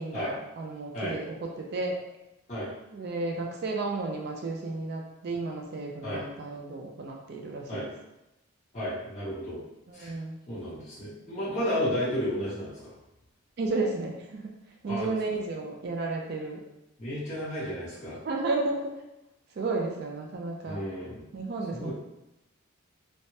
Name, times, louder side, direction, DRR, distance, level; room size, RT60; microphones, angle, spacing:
voice 1, 0.0-2.0 2.9-7.8 9.9-10.4 13.6-14.5 14.8-16.6 18.2-18.9 19.6-20.8 21.3-21.9, right 3 dB, 50° right, 1 dB, 0.3 m, -32 dB
voice 2, 8.7-9.6 9.9-10.1 10.5-12.9 14.9-15.1 17.0-18.2 20.6-21.2 21.7-21.9, equal, 30° left, -12 dB, 1.4 m, -32 dB
3.2 x 2.1 x 2.7 m, 0.92 s
head